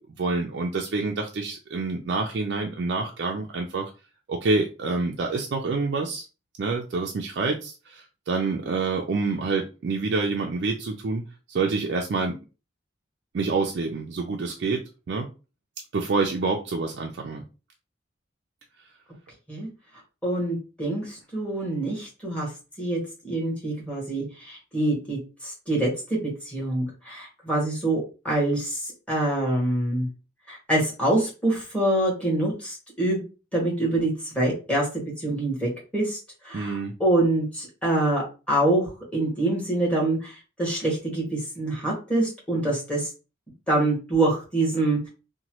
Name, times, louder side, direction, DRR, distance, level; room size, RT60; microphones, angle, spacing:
voice 1, 0.2-3.9 4.3-6.2 6.6-11.2 11.5-12.4 13.3-15.3 15.9-17.4 36.5-36.9, right 3 dB, 60° right, 1 dB, 0.4 m, -27 dB
voice 2, 20.2-22.5 22.8-26.2 26.4-28.8 29.1-30.1 30.5-33.2 33.5-34.9 35.2-36.2 36.4-43.1 43.7-45.1, right 1 dB, 5° left, -4 dB, 1.2 m, -25 dB
2.9 x 2.2 x 2.9 m, 0.32 s
head